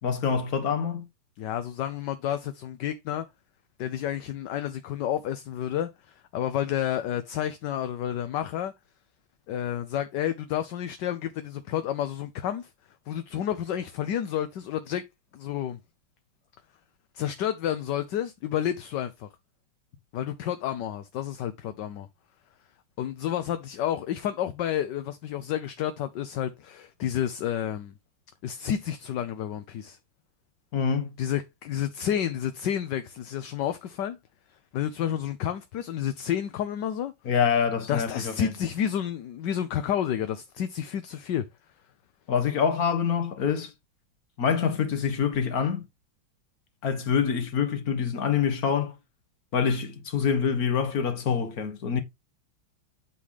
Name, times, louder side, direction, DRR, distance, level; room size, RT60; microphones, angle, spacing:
voice 1, 0.0-1.0 30.7-31.1 37.3-38.5 42.3-43.7 44.4-45.8 46.8-48.9 49.5-52.0, left 6 dB, 50° left, 1.8 m, -26 dB
voice 2, 1.4-3.2 3.8-8.7 9.5-12.7 13.1-15.0 15.3-15.8 17.1-19.3 20.1-22.1 23.0-27.9 28.4-30.0 31.2-34.2 34.7-37.1 37.9-41.4, left 10 dB, 65° left, 1.3 m, -30 dB
8.6 x 3.2 x 5.7 m
omnidirectional pair, 2.3 m